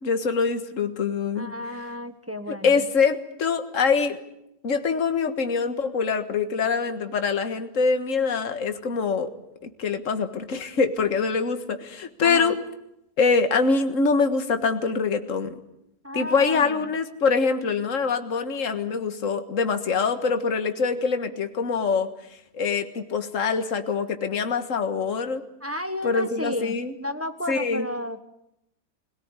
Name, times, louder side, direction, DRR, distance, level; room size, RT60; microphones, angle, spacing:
voice 1, 0.0-1.5 2.6-4.2 4.6-9.3 9.6-12.6 13.2-15.5 16.1-22.1 22.5-25.4 26.0-26.9 27.5-27.9, left 5 dB, 50° left, 8 dB, 1.9 m, -24 dB
voice 2, 1.3-2.8 12.2-12.5 16.0-16.8 25.6-28.2, left 1 dB, 10° right, 8 dB, 1.1 m, -33 dB
25.0 x 18.0 x 9.7 m, 0.82 s
omnidirectional pair, 1.8 m